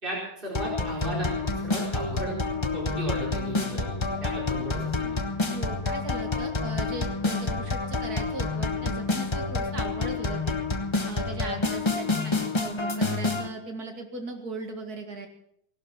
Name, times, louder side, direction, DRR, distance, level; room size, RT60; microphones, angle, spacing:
voice 1, 0.0-2.4 2.7-5.2, right 1 dB, 30° right, -4 dB, 4.9 m, -35 dB
sound 1, 0.5-13.5, left 3 dB, 20° left, 1.0 m, -28 dB
voice 2, 5.4-10.6 11.1-15.3, right 3 dB, 70° right, 4 dB, 2.6 m, -38 dB
17.5 x 12.0 x 6.0 m, 0.70 s
omnidirectional pair, 1.7 m